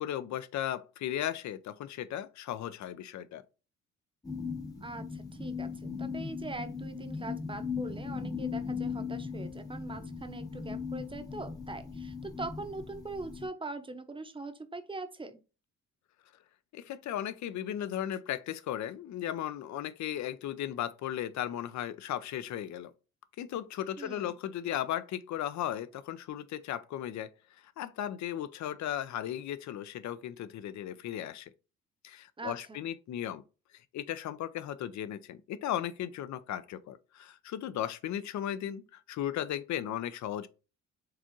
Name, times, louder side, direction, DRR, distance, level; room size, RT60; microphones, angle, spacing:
voice 1, 0.0-3.4 16.7-22.9 23.4-27.3 27.6-31.5 32.0-33.4 33.9-40.5, left 11 dB, 70° left, 0.6 m, -36 dB
sound 1, 4.2-13.5, left 5 dB, 10° left, 0.9 m, -38 dB
voice 2, 4.8-15.4 24.0-24.3 32.4-32.8, right 2 dB, 15° right, 0.7 m, -42 dB
4.9 x 3.5 x 3.0 m
cardioid pair, 90°, 30 cm